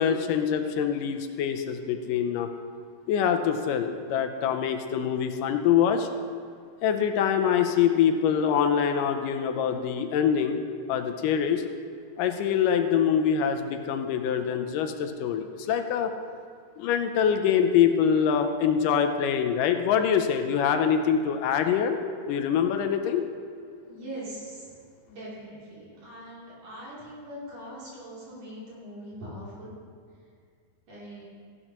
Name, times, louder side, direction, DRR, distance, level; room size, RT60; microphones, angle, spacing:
voice 1, 0.0-2.5 3.1-6.1 6.8-10.6 10.9-11.6 12.2-16.1 16.8-22.0 22.3-23.3, left 8 dB, 80° left, 6 dB, 2.2 m, -24 dB
voice 2, 23.8-24.8 25.1-29.7 30.9-31.3, equal, 65° right, -8 dB, 4.5 m, -41 dB
15.0 x 11.0 x 3.0 m, 2.2 s
omnidirectional pair, 3.9 m